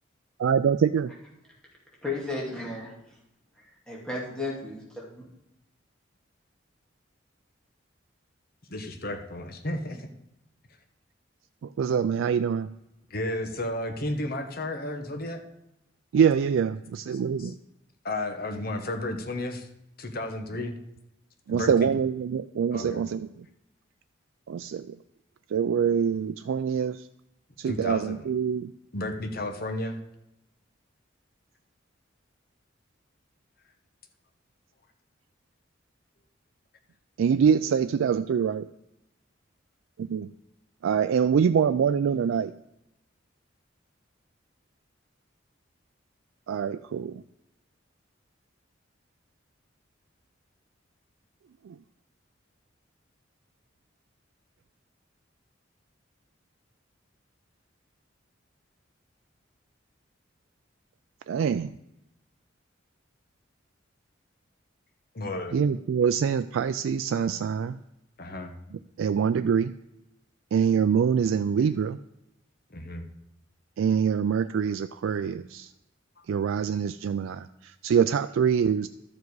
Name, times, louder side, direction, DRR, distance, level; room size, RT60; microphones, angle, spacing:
voice 1, 0.4-1.1 11.8-12.7 16.1-17.5 21.5-23.3 24.5-25.0 25.5-27.1 27.6-28.7 37.2-38.7 40.0-40.3 40.8-42.5 46.5-47.2 51.7-51.8 61.3-61.7 65.5-67.8 69.0-69.7 70.5-72.0 73.8-75.7 76.3-78.9, right 7 dB, 90° right, 10 dB, 0.3 m, -25 dB
voice 2, 2.0-2.9 3.9-5.2, left 2 dB, 5° left, -4 dB, 2.4 m, -33 dB
voice 3, 8.7-10.1 13.1-15.4 17.4-17.5 18.0-19.7 20.0-20.7 21.5-21.9 22.7-23.1 27.7-28.3 28.9-30.0 65.1-65.5 68.2-68.5 72.7-73.1 76.2-76.3, left 1 dB, 50° left, 6 dB, 1.1 m, -33 dB
12.5 x 7.2 x 4.7 m, 0.85 s
head